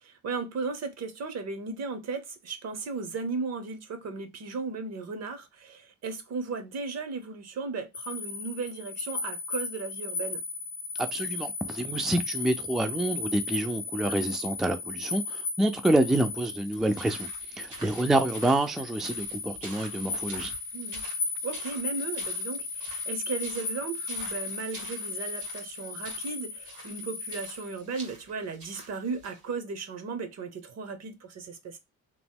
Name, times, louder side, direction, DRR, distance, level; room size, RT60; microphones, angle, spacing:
voice 1, 0.0-10.4 14.0-14.1 17.8-17.9 20.7-21.0 21.4-31.8, right 4 dB, 60° right, 0.9 m, -36 dB
sound 1, 7.9-27.8, left 4 dB, 60° left, 0.7 m, -36 dB
voice 2, 11.0-20.5, right 1 dB, ahead, 0.3 m, -27 dB
sound 2, 16.6-29.4, right 2 dB, 85° right, 1.8 m, -47 dB
3.0 x 2.1 x 3.5 m
cardioid pair, 90°, 30 cm